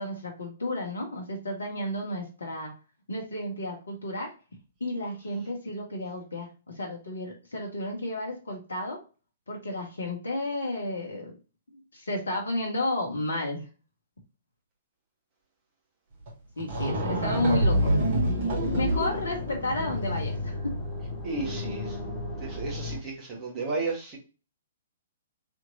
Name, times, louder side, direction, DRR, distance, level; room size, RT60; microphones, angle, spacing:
voice 1, 0.0-2.7 3.1-4.3 4.8-6.5 6.8-9.0 9.5-11.3 11.9-13.7 16.6-17.9 18.5-20.7, left 1 dB, 70° left, 0.9 m, -32 dB
sound 1, 16.3-16.4 16.6-20.4, right 1 dB, 45° right, 1.4 m, -27 dB
sound 2, 16.7-23.0, left 2 dB, 25° left, 1.0 m, -35 dB
voice 2, 21.2-22.0 22.4-24.2, right 3 dB, 25° right, 1.4 m, -33 dB
3.5 x 2.9 x 2.6 m
figure-of-eight pair, 115°, 0 cm